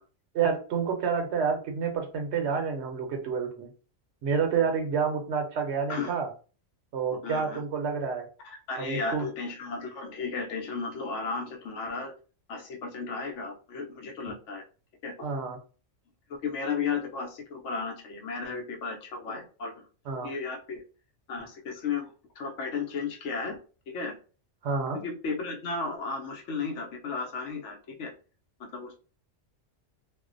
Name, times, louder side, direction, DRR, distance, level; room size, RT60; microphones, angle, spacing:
voice 1, 0.3-3.7 4.2-6.3 6.9-8.3 8.8-9.3 15.2-15.6 20.1-20.3 24.6-25.0, right 6 dB, 70° right, 4 dB, 0.9 m, -29 dB
voice 2, 7.1-7.6 8.4-12.1 12.5-14.6 15.0-15.3 16.3-19.7 20.2-20.8 21.3-22.1 22.4-23.6 23.9-24.1 24.9-28.1 28.6-28.9, left 4 dB, 85° left, 2 dB, 1.0 m, -34 dB
2.4 x 2.1 x 2.5 m, 0.36 s
omnidirectional pair, 1.2 m